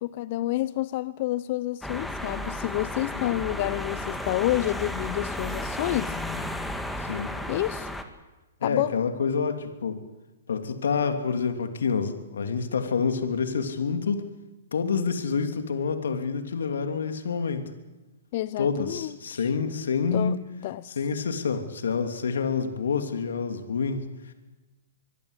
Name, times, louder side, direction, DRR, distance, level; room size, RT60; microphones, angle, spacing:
voice 1, 0.0-6.2 7.5-7.9 8.6-8.9 18.3-19.5 20.1-20.4 20.6-21.0, left 16 dB, 50° left, 17 dB, 0.7 m, -29 dB
sound 1, 1.8-8.0, left 1 dB, 5° left, 2.1 m, -33 dB
voice 2, 7.0-7.3 8.6-10.0 10.5-14.2 14.7-17.6 18.6-20.4 21.0-24.3, left 5 dB, 80° left, 7 dB, 3.0 m, -28 dB
24.5 x 23.5 x 8.3 m, 1.1 s
hypercardioid pair, 130°, 0 cm